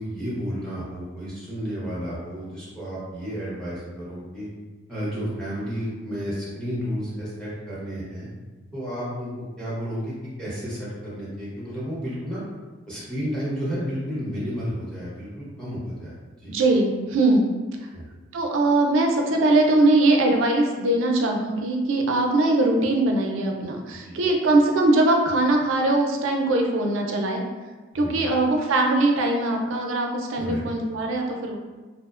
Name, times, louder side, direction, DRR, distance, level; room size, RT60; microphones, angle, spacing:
voice 1, 0.0-4.5 4.9-8.3 8.7-10.1 10.4-12.4 12.9-16.5 17.9-18.1 23.9-24.2 27.9-28.3 30.3-30.6, equal, 5° left, -9 dB, 0.7 m, -32 dB
voice 2, 16.5-17.5 18.3-27.4 27.9-31.6, right 2 dB, 75° right, 2 dB, 0.4 m, -21 dB
2.7 x 2.1 x 2.3 m, 1.3 s
head